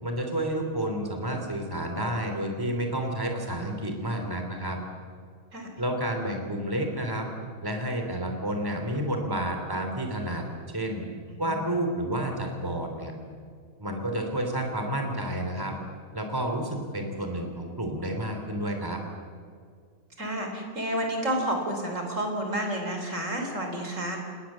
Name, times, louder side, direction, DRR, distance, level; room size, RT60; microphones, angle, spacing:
voice 1, 0.0-4.8 5.8-7.3 7.6-10.4 10.7-11.0 11.4-13.1 13.8-15.8 16.1-19.0, right 1 dB, 15° right, 4 dB, 3.1 m, -30 dB
voice 2, 11.3-11.7 20.2-24.2, right 1 dB, 60° right, 3 dB, 4.4 m, -30 dB
29.5 x 19.0 x 7.4 m, 2.1 s
omnidirectional pair, 1.5 m